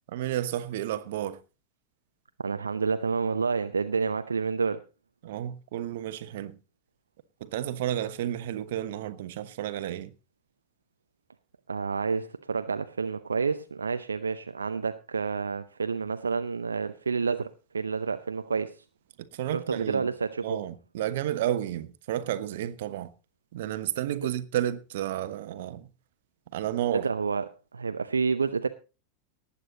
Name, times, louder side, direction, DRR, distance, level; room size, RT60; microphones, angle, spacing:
voice 1, 0.1-1.4 5.2-6.6 7.4-10.1 19.3-20.1 20.4-23.1 23.5-25.9 26.5-27.1, right 12 dB, 65° right, 1.2 m, -31 dB
voice 2, 2.4-4.8 11.7-17.5 17.7-18.8 19.5-20.6 26.9-28.7, right 5 dB, 85° right, 0.6 m, -29 dB
19.0 x 8.4 x 4.0 m
figure-of-eight pair, 90°, 0 cm